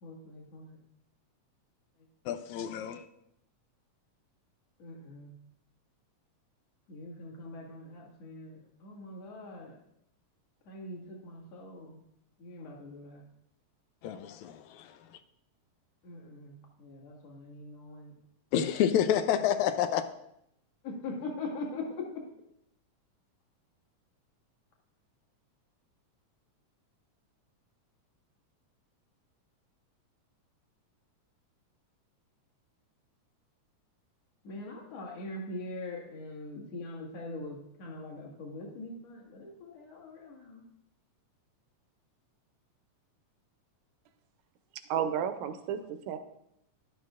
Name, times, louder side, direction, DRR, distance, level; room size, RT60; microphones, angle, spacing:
voice 1, 0.0-0.8 4.8-5.3 6.9-9.8 10.7-12.0 12.4-13.2 16.0-16.5 16.8-18.1 20.8-22.2 34.4-40.6, left 2 dB, 55° left, 2.8 m, -42 dB
voice 2, 2.3-3.1 14.0-15.0 18.5-20.0, left 9 dB, 80° left, 1.8 m, -29 dB
voice 3, 44.9-46.2, right 8 dB, 75° right, 1.8 m, -32 dB
12.5 x 11.5 x 2.5 m
omnidirectional pair, 3.6 m